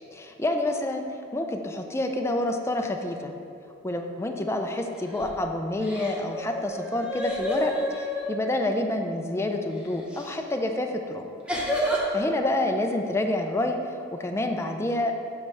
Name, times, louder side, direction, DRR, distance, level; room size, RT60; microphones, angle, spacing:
voice 1, 0.1-1.0 1.3-3.3 3.8-11.2 11.8-13.8 14.1-15.1, left 1 dB, 15° left, 4 dB, 0.5 m, -28 dB
sound 1, 5.0-5.4 5.8-8.3 10.1-10.3 11.5-12.1, equal, 5° right, 0.9 m, -29 dB
8.6 x 3.3 x 6.2 m, 2.4 s
head